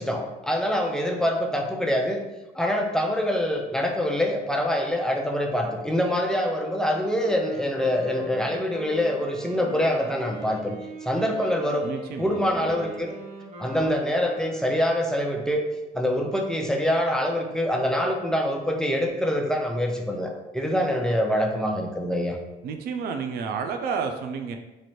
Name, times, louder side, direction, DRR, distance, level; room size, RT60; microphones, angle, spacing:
voice 1, 0.0-2.2 2.5-10.7 11.0-11.9 12.2-13.1 13.6-15.6 15.9-22.4, equal, 5° left, 1 dB, 0.5 m, -25 dB
Wind instrument woodwind instrument, 7.1-15.1, right 2 dB, 40° right, 0.8 m, -41 dB
voice 2, 11.8-12.7 22.6-24.6, right 5 dB, 65° right, 5 dB, 0.5 m, -31 dB
3.1 x 2.5 x 4.2 m, 1.0 s
cardioid pair, 110°, 17 cm